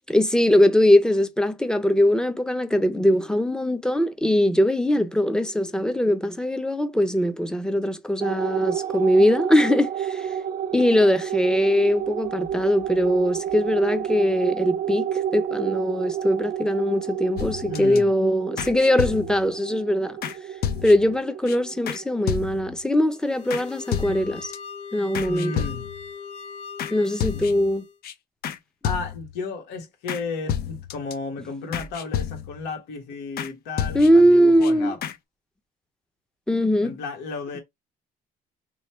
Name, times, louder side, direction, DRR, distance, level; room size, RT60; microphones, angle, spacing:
voice 1, 0.1-10.3 10.7-20.2 20.8-24.5 24.9-25.6 26.9-27.9 33.9-34.9 36.5-37.0, equal, 5° left, 0.6 m, -21 dB
sound 1, 8.2-23.0, right 9 dB, 60° right, 0.5 m, -30 dB
sound 2, 17.4-18.0 18.6-19.5 20.2-20.4 20.6-21.2 21.5-21.6 21.9-22.0 22.3-22.8 23.5-23.6 23.9-24.6 25.1-26.1 26.8-26.9 27.2-27.7 28.0-28.1 28.4-28.6 28.8-29.4 30.1-30.2 30.5-31.1 31.7-32.7 33.4-33.5 33.8-34.3 34.6-34.7 35.0-35.2, left 9 dB, 65° left, 0.7 m, -30 dB
voice 2, 17.7-18.1 25.3-25.9 27.3-27.5 28.8-35.0 36.8-37.6, left 4 dB, 90° left, 1.4 m, -33 dB
sound 3, 23.1-28.0, left 6 dB, 40° left, 1.4 m, -40 dB
3.1 x 2.3 x 4.2 m
cardioid pair, 110°, 17 cm